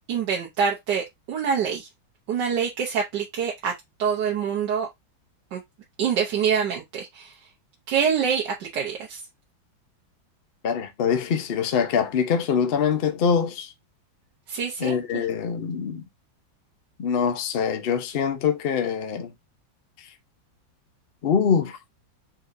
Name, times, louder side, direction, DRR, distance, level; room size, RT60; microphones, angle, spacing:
voice 1, 0.1-1.9 2.3-3.7 4.0-4.9 5.5-5.6 6.0-7.3 7.9-9.2 14.5-15.2, right 7 dB, 65° right, 1.4 m, -25 dB
voice 2, 10.6-13.7 14.8-16.0 17.0-19.3 21.2-21.8, left 7 dB, 75° left, 0.5 m, -24 dB
4.2 x 3.9 x 2.6 m
omnidirectional pair, 2.1 m